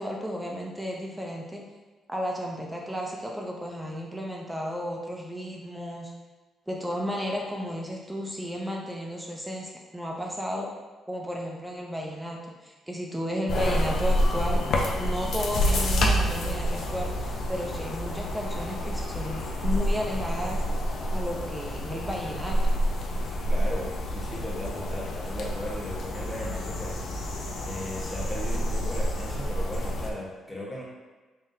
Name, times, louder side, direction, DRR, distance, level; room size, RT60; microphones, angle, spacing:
voice 1, 0.0-1.6 2.1-6.1 6.7-10.7 11.1-14.6 15.0-20.6 21.1-22.8, equal, 5° right, -1 dB, 0.6 m, -33 dB
sound 1, 13.5-30.1, equal, 65° left, 0.5 m, -28 dB
voice 2, 23.5-27.0 27.6-30.8, left 1 dB, 10° left, -5 dB, 1.1 m, -37 dB
3.7 x 3.5 x 2.7 m, 1.3 s
cardioid pair, 90°, 0 cm